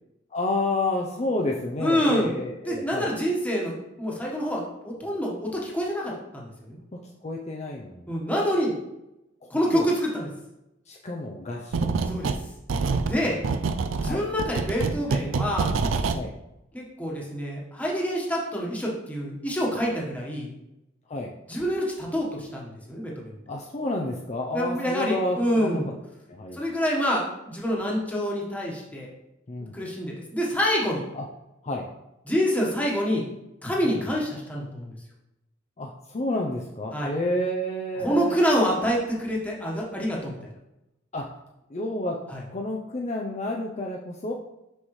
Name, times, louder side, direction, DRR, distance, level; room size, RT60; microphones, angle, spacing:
voice 1, 0.3-3.1 7.2-8.1 9.7-9.8 10.9-12.0 13.2-13.6 14.0-14.2 16.1-16.3 21.1-21.3 23.5-25.9 26.3-26.6 29.5-29.8 31.1-31.2 31.6-31.8 33.8-34.0 35.8-38.3 41.1-41.2 41.7-42.2 42.5-44.3, left 1 dB, 35° left, 0 dB, 0.5 m, -30 dB
voice 2, 1.8-2.3 2.7-3.7 4.0-6.8 8.1-8.7 9.5-10.3 12.1-12.3 13.0-13.4 14.0-15.7 16.7-20.5 21.5-23.4 24.5-25.9 26.5-29.1 29.7-31.0 32.3-33.2 33.6-34.9 36.9-37.1 38.0-40.4 42.3-42.4, equal, 10° left, -3 dB, 1.3 m, -26 dB
sound 1, 11.7-12.4 12.7-16.2, right 4 dB, 85° right, 0.4 m, -26 dB
6.1 x 5.9 x 3.2 m, 0.91 s
head